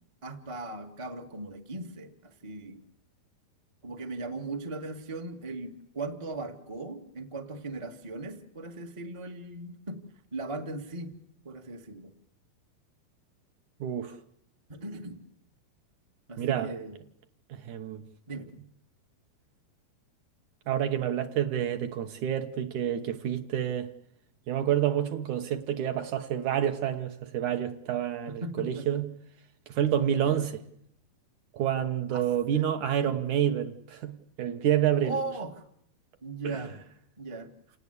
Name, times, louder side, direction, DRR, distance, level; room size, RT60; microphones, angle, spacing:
voice 1, 0.2-2.8 3.8-10.0 10.3-11.1 11.4-12.1 14.7-15.2 16.3-17.0 18.3-18.5 28.3-29.0 30.1-30.5 32.1-32.2 32.5-32.6 33.0-33.2 35.0-35.6 36.2-36.7 37.2-37.5, right 2 dB, 35° right, 0.5 m, -38 dB
voice 2, 13.8-14.2 16.4-16.7 17.5-18.0 20.7-23.9 24.5-29.1 29.7-30.5 31.5-35.2 36.4-36.6, right 10 dB, 65° right, 2.1 m, -28 dB
29.0 x 18.0 x 8.3 m
omnidirectional pair, 4.4 m